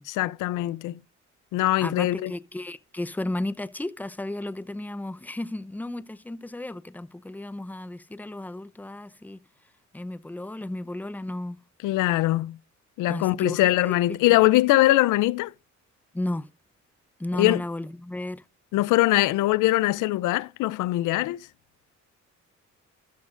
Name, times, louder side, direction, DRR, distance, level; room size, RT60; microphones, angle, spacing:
voice 1, 0.1-1.0 1.5-2.3 11.8-12.6 13.0-15.5 17.4-17.6 18.7-21.4, left 17 dB, 90° left, 0.5 m, -22 dB
voice 2, 1.8-9.4 9.9-11.6 13.1-13.9 16.1-16.5 17.2-18.4, left 1 dB, 5° left, 0.7 m, -33 dB
13.0 x 12.5 x 2.5 m
cardioid pair, 90°, 30 cm